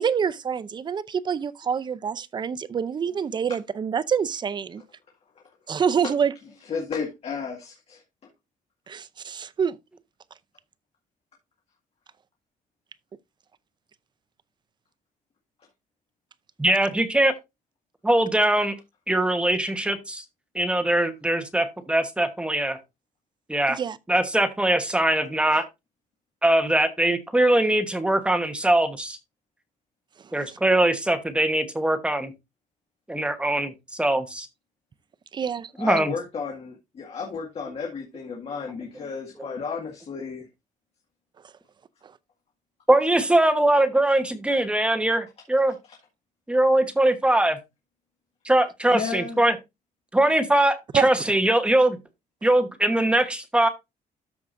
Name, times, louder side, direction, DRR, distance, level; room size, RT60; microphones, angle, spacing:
voice 1, 0.0-4.8 5.7-6.3 8.9-9.8 23.7-24.0 30.5-30.6 35.3-35.7 42.0-42.1 50.9-51.1, right 7 dB, 30° right, 0.5 m, -26 dB
voice 2, 6.7-8.0 35.8-40.5 48.9-49.4, left 5 dB, 45° left, 1.9 m, -33 dB
voice 3, 16.6-17.3 18.0-18.7 19.1-20.2 20.5-22.8 23.5-23.8 24.1-25.6 26.4-29.2 30.3-32.3 33.1-34.5 35.8-36.1 39.4-39.5 42.9-45.7 46.5-47.6 48.4-49.5 50.1-52.0 52.4-53.7, right 1 dB, 5° right, 1.1 m, -22 dB
13.0 x 4.7 x 2.6 m
cardioid pair, 135°, 14 cm